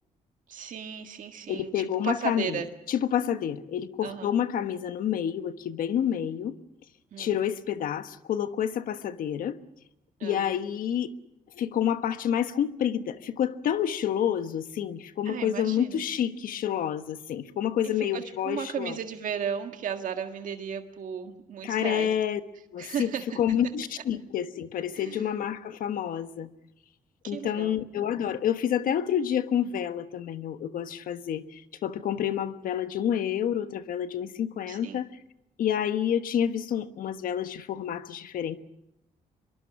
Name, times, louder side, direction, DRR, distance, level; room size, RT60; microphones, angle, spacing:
voice 1, 0.5-2.7 4.0-4.3 7.1-7.4 10.2-10.5 15.3-16.0 17.8-22.1 22.8-23.4 24.9-25.2 27.2-27.8 34.7-35.0, right 7 dB, 65° right, 6 dB, 1.8 m, -35 dB
voice 2, 1.5-2.6 2.9-6.5 7.2-9.6 10.2-11.1 11.5-19.0 21.6-22.4 22.7-23.1 23.4-26.5 27.2-35.1 35.6-38.6, left 9 dB, 75° left, 10 dB, 1.3 m, -28 dB
25.0 x 23.0 x 6.0 m, 0.87 s
cardioid pair, 105°, 15 cm